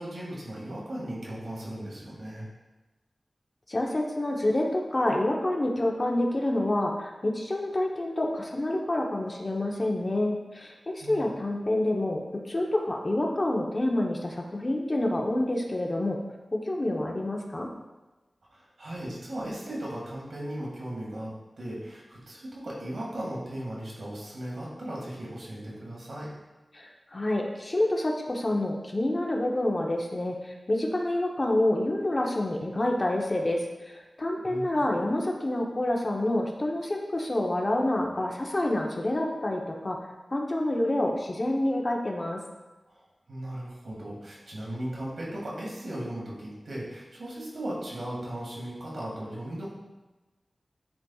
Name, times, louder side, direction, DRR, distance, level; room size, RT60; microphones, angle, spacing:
voice 1, 0.0-2.5 11.0-11.3 18.5-26.3 34.4-34.8 42.9-49.7, right 1 dB, 85° right, -5 dB, 2.0 m, -37 dB
voice 2, 3.7-16.2 16.5-17.7 26.7-40.0 40.3-42.4, left 1 dB, 40° left, 0 dB, 0.9 m, -28 dB
9.7 x 4.1 x 2.4 m, 1.1 s
wide cardioid pair, 80°, 0 cm